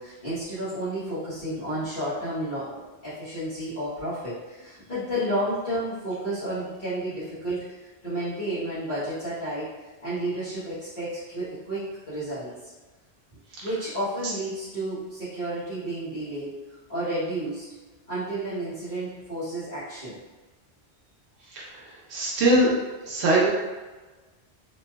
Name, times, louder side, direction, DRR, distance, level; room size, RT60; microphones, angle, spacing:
voice 1, 0.0-9.7 10.0-12.7 13.6-16.5 16.9-17.7 18.1-20.1, right 1 dB, 50° left, -15 dB, 1.2 m, -31 dB
voice 2, 22.1-22.7 23.1-23.5, right 1 dB, 80° right, -4 dB, 0.9 m, -21 dB
3.1 x 2.6 x 2.2 m, 1.2 s
omnidirectional pair, 1.1 m